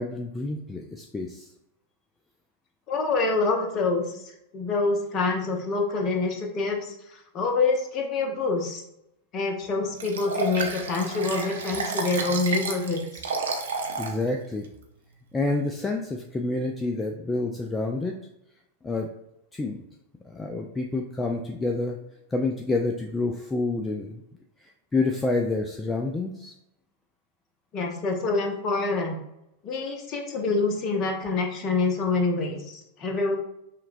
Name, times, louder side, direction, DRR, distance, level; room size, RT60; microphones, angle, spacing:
voice 1, 0.0-1.5 14.0-14.7 15.3-18.1 18.8-19.1 19.5-19.8 20.3-22.0 22.3-24.2 24.6-26.5, left 2 dB, 10° left, 2 dB, 0.3 m, -28 dB
voice 2, 2.9-8.8 9.3-13.3 27.7-29.2 29.6-33.4, left 3 dB, 35° left, 3 dB, 0.7 m, -26 dB
Liquid, 10.0-14.2 14.6-14.7, right 4 dB, 65° right, 0.5 m, -31 dB
5.6 x 2.2 x 2.6 m, 0.84 s
figure-of-eight pair, 90°, 0 cm